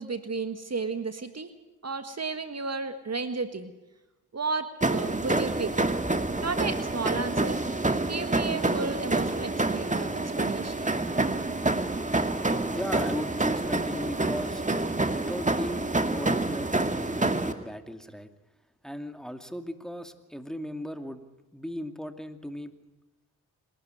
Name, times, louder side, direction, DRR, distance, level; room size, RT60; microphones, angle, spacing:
voice 1, 0.0-1.5 1.8-3.7 4.3-5.7 6.4-7.6 8.1-10.8, right 4 dB, 40° right, 9 dB, 1.7 m, -33 dB
sound 1, 4.8-17.5, right 2 dB, 20° right, 2.2 m, -27 dB
voice 2, 12.7-14.6 15.1-18.3 18.8-21.2 21.5-22.7, equal, ahead, 7 dB, 2.4 m, -37 dB
27.0 x 12.5 x 9.4 m, 1.0 s
supercardioid pair, 45°, 40 cm